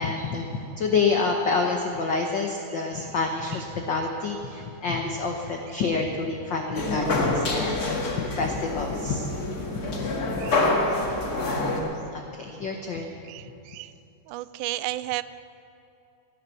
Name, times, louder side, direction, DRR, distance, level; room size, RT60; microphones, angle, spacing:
voice 1, 0.0-8.0 8.3-9.3 9.7-10.1 11.0-11.2 12.1-13.2, left 4 dB, 75° left, 2 dB, 1.0 m, -28 dB
sound 1, 6.7-11.8, left 2 dB, 35° left, 1.8 m, -26 dB
voice 2, 13.3-13.9 14.3-15.2, right 16 dB, 85° right, 15 dB, 2.0 m, -33 dB
17.0 x 10.5 x 6.9 m, 2.9 s
omnidirectional pair, 3.5 m